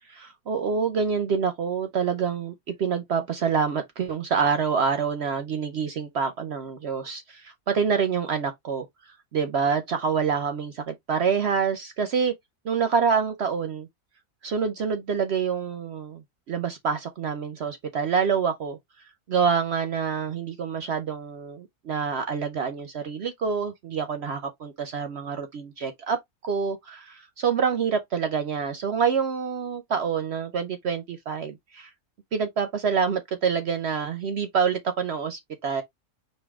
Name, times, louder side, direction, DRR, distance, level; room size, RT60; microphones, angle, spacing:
voice 1, 0.2-8.9 9.3-12.3 12.6-13.9 14.4-16.2 16.5-18.8 19.3-31.9 32.3-35.8, right 6 dB, 60° right, 0.7 m, -26 dB
4.5 x 2.8 x 3.4 m
omnidirectional pair, 1.5 m